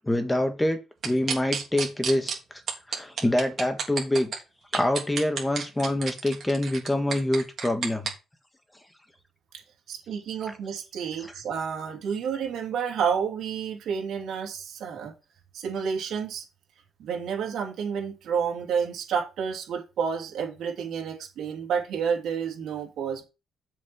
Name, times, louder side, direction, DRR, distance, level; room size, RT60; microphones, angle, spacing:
voice 1, 0.0-0.8 1.0-2.6 2.9-4.3 4.7-8.1, left 1 dB, 10° left, 1.6 m, -26 dB
sound 1, 1.0-2.3 2.7-4.4 4.7-8.1, right 6 dB, 50° right, 2.9 m, -30 dB
voice 2, 9.9-15.1 15.5-16.4 17.0-23.2, right 7 dB, 70° right, 2.9 m, -30 dB
7.5 x 4.9 x 6.2 m
cardioid pair, 125°, 0 cm